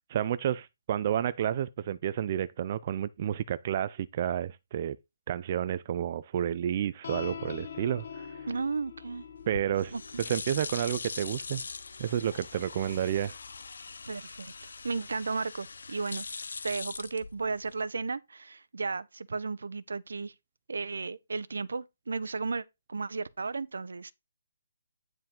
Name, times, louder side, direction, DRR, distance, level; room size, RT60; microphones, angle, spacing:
voice 1, 0.1-5.0 5.3-8.4 9.5-11.6 12.0-13.4, right 10 dB, 30° right, 0.3 m, -30 dB
sound 1, 7.0-13.7, left 7 dB, 45° left, 0.7 m, -46 dB
voice 2, 8.4-9.2 9.9-10.0 14.1-16.2 16.6-20.3 20.7-22.6 22.9-24.1, right 4 dB, 85° right, 0.7 m, -34 dB
sound 2, 9.4-17.8, left 4 dB, 75° left, 0.8 m, -41 dB
9.3 x 4.6 x 3.8 m
hypercardioid pair, 170°, 0 cm